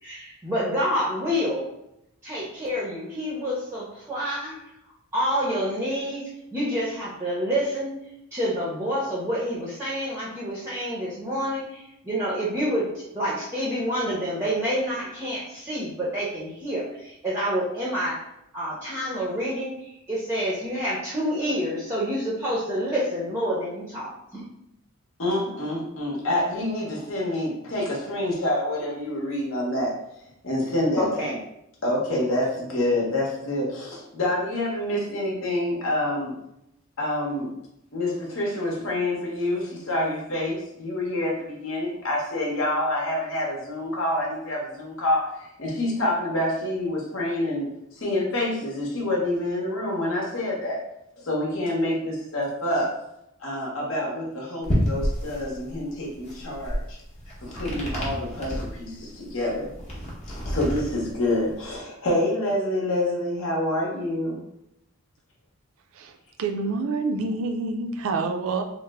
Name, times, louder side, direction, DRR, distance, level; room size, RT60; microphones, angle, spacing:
voice 1, 0.0-1.7 2.2-4.7 5.1-6.2 6.5-7.9 8.3-18.3 18.5-24.4 31.0-31.3, equal, 10° right, -6 dB, 0.5 m, -28 dB
voice 2, 25.2-29.9 30.4-31.3 31.8-36.3 37.0-37.5 37.9-50.8 51.2-52.9 53.4-57.0 57.4-59.7 60.3-64.4, left 1 dB, 60° left, -3 dB, 0.9 m, -27 dB
sound 1, 54.6-61.8, equal, 30° left, 0.7 m, -30 dB
voice 3, 65.9-68.6, right 3 dB, 70° right, 5 dB, 0.4 m, -27 dB
3.2 x 2.0 x 3.4 m, 0.82 s
head